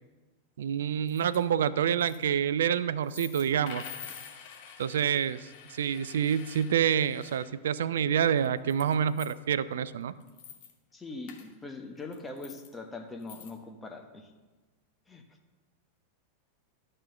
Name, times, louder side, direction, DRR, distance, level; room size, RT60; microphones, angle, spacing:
voice 1, 0.6-3.8 4.8-10.1, right 8 dB, 60° right, 16 dB, 0.3 m, -27 dB
sound 1, 1.1-1.4 1.8-2.3 3.0-7.5 8.2-9.3 9.7-9.8 10.1-10.7 11.3-11.5 12.0-12.7 13.2-13.5, left 8 dB, 45° left, 1.3 m, -47 dB
voice 2, 10.9-14.3 15.1-15.2, left 3 dB, 10° left, 3 dB, 1.1 m, -42 dB
12.0 x 4.4 x 6.3 m, 1.2 s
figure-of-eight pair, 90°, 0 cm